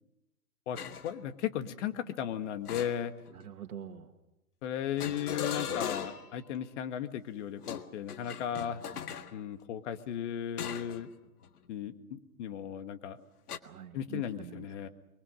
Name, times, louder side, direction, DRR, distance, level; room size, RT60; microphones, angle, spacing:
voice 1, 0.7-3.1 4.6-8.8 9.3-11.1 11.7-13.3 13.9-14.9, left 9 dB, 50° left, 9 dB, 1.9 m, -36 dB
sound 1, 0.8-1.1 2.7-3.4 5.0-6.4 7.6-9.3 10.6-11.0 11.4-11.7 13.5-13.6, left 8 dB, 80° left, 1.7 m, -38 dB
voice 2, 3.3-4.1 5.7-5.8 8.5-9.1 13.6-14.9, right 9 dB, 75° right, 5 dB, 2.0 m, -46 dB
24.5 x 23.0 x 6.4 m, 0.94 s
hypercardioid pair, 145°, 45 cm